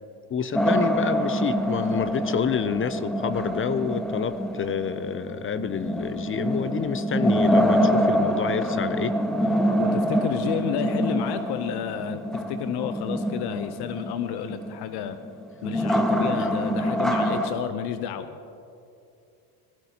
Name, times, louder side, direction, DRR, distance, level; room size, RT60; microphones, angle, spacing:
voice 1, 0.3-9.2 16.4-16.5, left 7 dB, 30° left, 14 dB, 0.5 m, -28 dB
sound 1, 0.5-17.5, equal, ahead, 1.2 m, -25 dB
voice 2, 9.7-15.2 15.6-18.4, left 10 dB, 65° left, 10 dB, 0.7 m, -31 dB
17.5 x 16.0 x 2.9 m, 2.6 s
supercardioid pair, 75°, 43 cm